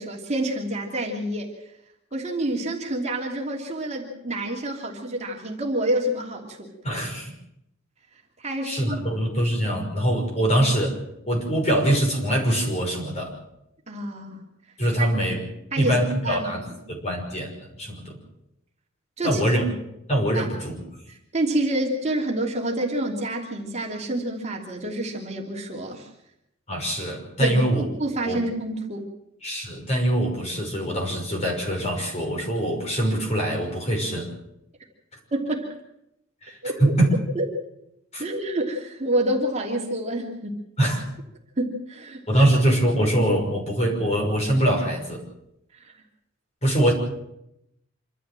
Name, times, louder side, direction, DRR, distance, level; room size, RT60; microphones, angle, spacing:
voice 1, 0.0-1.5 2.1-6.7 8.4-9.0 13.9-14.4 15.0-15.1 15.7-16.0 16.2-16.8 19.2-19.4 20.3-20.5 21.3-26.1 27.4-29.1 35.3-35.7 36.6-36.9 37.3-37.4 38.2-40.5 41.6-42.5 45.7-45.9, right 1 dB, 35° right, 0 dB, 3.1 m, -28 dB
voice 2, 6.8-7.3 8.6-11.0 11.3-13.4 14.8-15.4 15.8-16.6 16.9-18.2 19.2-19.6 20.1-20.8 26.7-27.8 28.3-28.4 29.4-34.3 36.4-37.1 38.1-38.2 40.8-41.0 42.3-45.2 46.6-46.9, right 1 dB, 30° left, 1 dB, 5.8 m, -23 dB
26.5 x 13.5 x 7.6 m, 0.81 s
head